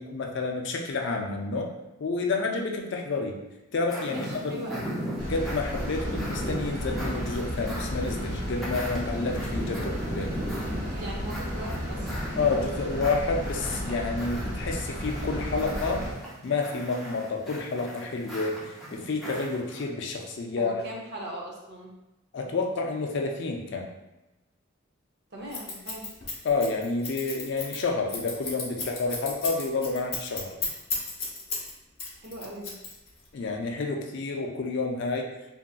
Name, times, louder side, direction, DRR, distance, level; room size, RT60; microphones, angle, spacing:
voice 1, 0.0-1.7 2.0-3.4 3.7-4.7 5.2-10.4 12.4-16.0 16.4-20.7 22.3-23.9 26.4-30.5 33.3-35.3, left 3 dB, 55° left, 2 dB, 0.4 m, -29 dB
sound 1, 3.9-19.8, equal, ahead, 0.5 m, -37 dB
voice 2, 4.1-4.9 10.9-12.6 20.6-21.9 25.3-26.1 32.2-32.7, right 1 dB, 55° right, -2 dB, 0.6 m, -39 dB
sound 2, 5.2-16.1, equal, 85° right, 1.3 m, -34 dB
Scissors, 25.5-31.7 32.0-33.3, left 4 dB, 30° left, 0.7 m, -33 dB
2.9 x 2.5 x 2.3 m, 1.0 s
head